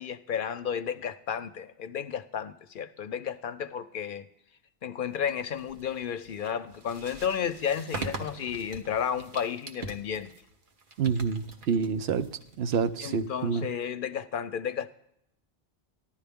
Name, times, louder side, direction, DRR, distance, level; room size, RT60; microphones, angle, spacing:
voice 1, 0.0-4.3 4.8-10.3 13.0-14.9, left 8 dB, 60° left, 0.7 m, -32 dB
sound 1, 5.2-13.8, right 3 dB, 55° right, 1.1 m, -43 dB
voice 2, 11.0-12.3 12.6-13.7, right 6 dB, 80° right, 0.9 m, -27 dB
14.5 x 11.5 x 3.5 m
omnidirectional pair, 1.1 m